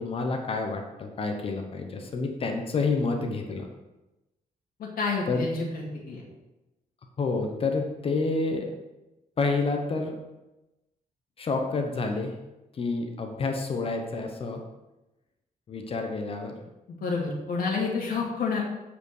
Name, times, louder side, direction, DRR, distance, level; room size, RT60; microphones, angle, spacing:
voice 1, 0.0-3.7 5.3-5.5 7.2-8.7 9.4-10.1 11.4-12.3 12.7-14.6 15.7-16.5, left 3 dB, 40° left, 4 dB, 1.0 m, -29 dB
voice 2, 4.8-6.2 16.9-18.6, left 4 dB, 80° left, -1 dB, 2.4 m, -29 dB
8.2 x 5.0 x 6.6 m, 1.0 s
wide cardioid pair, 180°, 15 cm